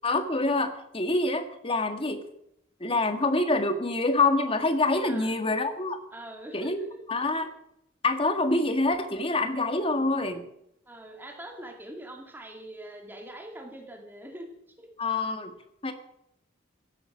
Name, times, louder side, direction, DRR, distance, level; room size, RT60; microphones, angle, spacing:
voice 1, 0.0-2.2 2.8-6.0 6.5-7.5 8.0-10.4 15.0-15.5 15.8-15.9, left 2 dB, 30° left, 8 dB, 1.7 m, -26 dB
voice 2, 5.0-5.3 6.1-7.0 10.9-14.9, right 1 dB, 10° right, 2 dB, 2.3 m, -43 dB
16.0 x 12.5 x 6.0 m, 0.76 s
head